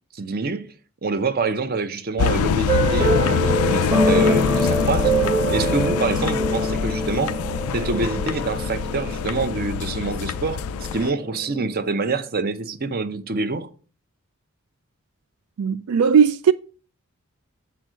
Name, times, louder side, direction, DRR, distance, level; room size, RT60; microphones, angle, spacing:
voice 1, 0.1-0.7 1.0-5.2 5.5-7.4 7.7-10.6 10.9-13.7, right 3 dB, 45° right, 0.6 m, -26 dB
sound 1, 2.2-11.1, left 7 dB, 85° left, 0.4 m, -25 dB
sound 2, 2.7-11.9, right 1 dB, 25° right, 1.3 m, -25 dB
voice 2, 15.6-16.5, right 7 dB, 80° right, 0.4 m, -17 dB
7.8 x 4.5 x 6.1 m
head